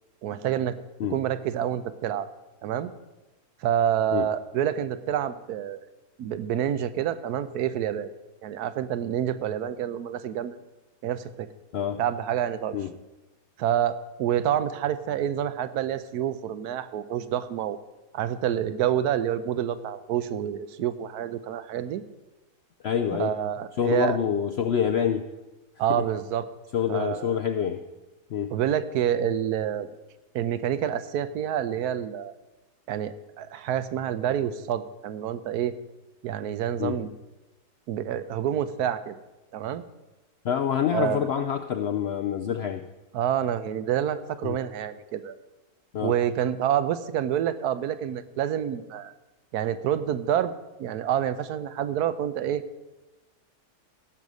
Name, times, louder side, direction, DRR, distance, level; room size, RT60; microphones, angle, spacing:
voice 1, 0.2-0.8 1.1-2.3 2.6-2.9 3.6-5.8 6.2-8.1 8.4-10.6 11.0-11.5 12.0-12.8 13.6-17.8 18.1-22.0 23.1-24.2 25.8-26.5 26.9-27.4 28.5-29.9 30.3-32.3 32.9-35.7 36.2-37.1 37.9-39.2 39.5-39.8 40.9-41.3 43.1-45.4 46.0-49.1 49.5-50.5 50.8-52.6, right 10 dB, 80° right, 13 dB, 1.2 m, -28 dB
voice 2, 22.8-23.3 23.8-25.3 25.9-26.0 26.7-27.8 28.3-28.5 36.8-37.0 40.4-42.8 44.4-44.6 45.9-46.2, left 8 dB, 70° left, 7 dB, 0.6 m, -26 dB
16.5 x 6.3 x 5.3 m, 1.1 s
omnidirectional pair, 1.7 m